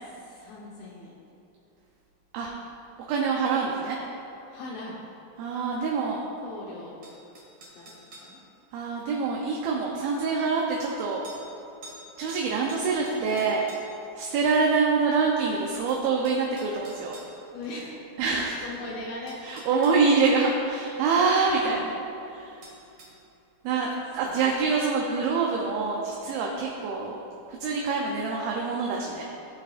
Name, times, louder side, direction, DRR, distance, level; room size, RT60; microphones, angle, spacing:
voice 1, 0.2-1.2 4.5-5.0 6.4-7.0 7.7-7.9 8.2-8.4 13.1-13.3 17.5-18.0 18.6-19.4 21.7-21.9 24.2-24.4, left 2 dB, 75° left, -4 dB, 2.8 m, -39 dB
voice 2, 3.1-4.0 5.4-6.2 8.7-11.2 12.2-13.6 14.2-17.2 18.2-18.6 19.4-21.9 22.3-22.6 23.6-27.2 27.5-29.2, right 4 dB, 75° right, -1 dB, 2.5 m, -25 dB
sound 1, 7.0-8.4 9.8-9.9 11.2-11.4 11.8-12.0 12.3-14.0 15.4-15.5 15.9-17.3 18.7-18.8 19.3-20.0 22.6-23.1, right 2 dB, 45° right, 2.1 m, -48 dB
16.0 x 8.4 x 2.5 m, 2.7 s
omnidirectional pair, 4.5 m